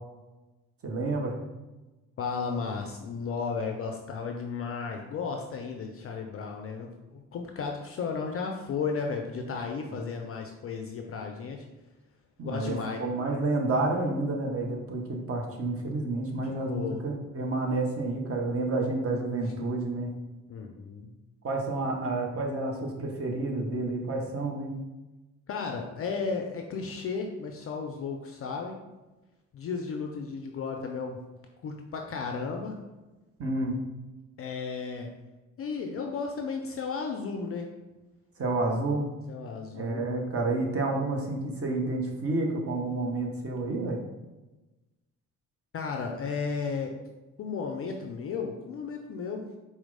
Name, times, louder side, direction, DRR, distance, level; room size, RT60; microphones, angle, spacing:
voice 1, 0.8-1.4 9.9-10.0 12.4-20.1 21.4-24.7 33.4-33.8 38.4-39.0 39.7-44.0, right 2 dB, 30° right, 1 dB, 0.8 m, -30 dB
voice 2, 2.2-11.7 12.4-13.0 16.4-17.0 20.5-21.1 25.5-28.8 29.5-31.2 31.6-32.8 34.4-35.1 35.6-37.7 39.3-40.1 45.7-46.9 47.4-49.5, left 5 dB, 35° left, 2 dB, 0.4 m, -34 dB
4.4 x 2.1 x 3.8 m, 1.1 s
figure-of-eight pair, 45°, 44 cm